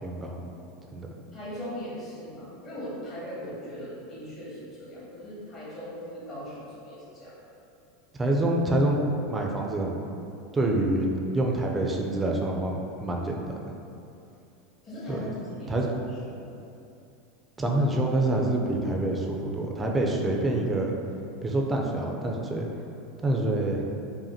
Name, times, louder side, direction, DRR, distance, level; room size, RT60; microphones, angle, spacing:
voice 1, 0.0-0.4 0.9-1.1 8.2-9.0 9.3-10.0 10.5-11.1 11.3-13.7 15.1-15.2 15.7-15.9 17.6-21.0 21.4-22.7 23.2-23.8, right 1 dB, 15° right, 0 dB, 0.4 m, -26 dB
voice 2, 1.3-7.3 14.8-16.5, equal, 40° left, -8 dB, 1.4 m, -39 dB
4.9 x 2.5 x 2.8 m, 2.7 s
supercardioid pair, 130°, 0 cm